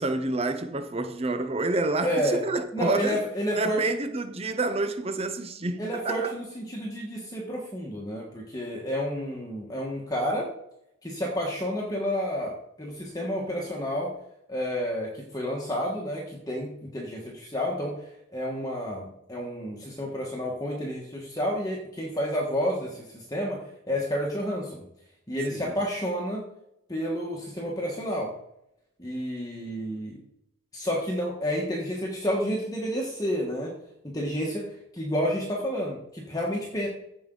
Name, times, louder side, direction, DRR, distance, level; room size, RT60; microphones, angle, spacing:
voice 1, 0.0-3.2 3.5-6.3 25.5-25.7, right 2 dB, 30° right, 0.7 m, -28 dB
voice 2, 2.0-2.4 2.7-3.8 5.8-10.5 11.0-14.1 14.5-18.0 18.3-24.8 25.3-26.4 26.9-28.3 29.0-30.2 30.7-33.7 34.0-36.9, equal, 20° left, 1.3 m, -30 dB
15.0 x 5.2 x 3.9 m
head